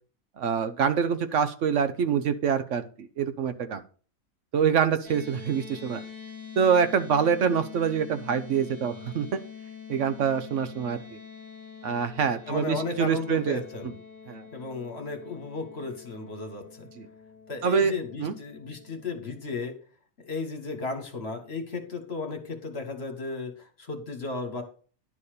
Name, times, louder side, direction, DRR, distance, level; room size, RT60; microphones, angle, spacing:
voice 1, 0.4-3.8 4.5-6.0 6.6-9.4 9.9-11.2 11.8-13.6 14.3-14.5 17.0-17.1 17.6-17.9 18.2-18.3, right 7 dB, 65° right, 11 dB, 1.0 m, -25 dB
sound 1, 5.0-19.4, left 6 dB, 50° right, 3.4 m, -45 dB
voice 2, 12.5-14.0 14.5-16.9 17.5-19.7 20.2-24.6, left 4 dB, 50° left, 5 dB, 1.8 m, -34 dB
11.0 x 4.2 x 6.6 m, 0.40 s
omnidirectional pair, 1.4 m